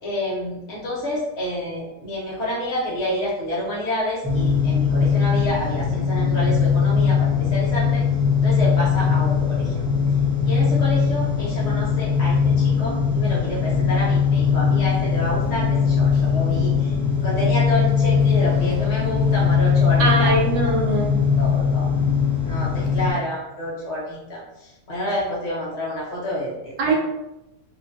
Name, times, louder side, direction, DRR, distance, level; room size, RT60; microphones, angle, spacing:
voice 1, 0.0-8.0 8.4-9.7 10.4-16.9 17.2-20.3 20.6-20.7 21.4-21.9 22.4-26.9, left 1 dB, 55° left, -5 dB, 0.9 m, -28 dB
sound 1, 4.2-23.1, left 6 dB, 40° right, 1.0 m, -20 dB
voice 2, 20.0-21.2 26.8-26.9, right 3 dB, 80° right, 0 dB, 1.2 m, -21 dB
2.9 x 2.2 x 2.5 m, 0.93 s
omnidirectional pair, 1.8 m